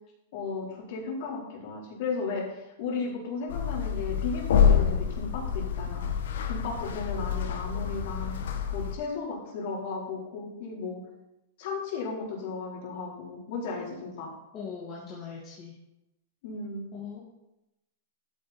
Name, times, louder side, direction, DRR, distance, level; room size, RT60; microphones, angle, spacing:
voice 1, 0.3-6.1 6.5-8.3 8.7-11.0 11.6-14.3 16.4-16.8, left 4 dB, 50° left, -3 dB, 4.5 m, -35 dB
sound 1, 3.5-8.9, left 7 dB, 75° left, 1.5 m, -27 dB
voice 2, 14.5-15.7 16.9-17.2, left 6 dB, 25° left, -5 dB, 2.2 m, -40 dB
13.0 x 9.1 x 4.5 m, 0.92 s
supercardioid pair, 160°, 0 cm